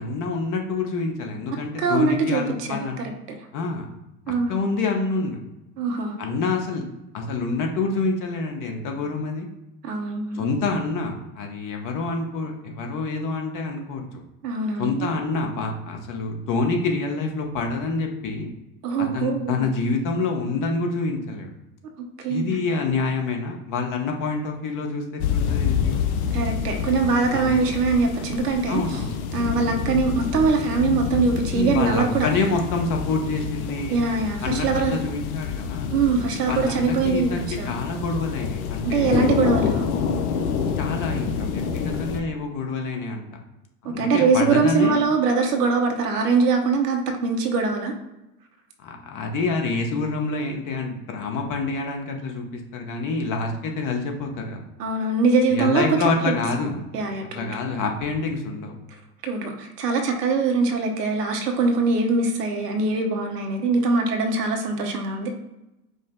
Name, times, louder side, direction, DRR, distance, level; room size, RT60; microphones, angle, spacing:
voice 1, 0.0-3.1 3.5-3.8 4.3-5.4 6.2-6.8 7.1-9.5 10.3-14.2 14.8-18.5 19.0-21.5 22.3-26.0 27.3-27.6 28.7-29.2 31.5-34.0 34.4-35.9 36.5-39.2 40.8-43.2 43.8-45.0 48.8-54.6 55.5-56.8 57.3-58.8, left 3 dB, 40° left, 3 dB, 1.0 m, -27 dB
voice 2, 1.8-3.1 4.3-4.5 5.8-6.1 9.8-10.5 14.4-14.9 18.8-19.7 22.2-22.5 26.3-28.8 29.3-32.3 33.9-35.0 35.9-37.7 38.8-39.8 43.8-47.9 54.8-56.0 56.3-56.4 56.9-57.5 59.2-65.3, right 4 dB, 80° right, 3 dB, 0.9 m, -22 dB
sound 1, 25.2-42.2, left 7 dB, 65° left, 0.7 m, -27 dB
5.1 x 2.1 x 3.7 m, 0.94 s
hypercardioid pair, 80°, 47 cm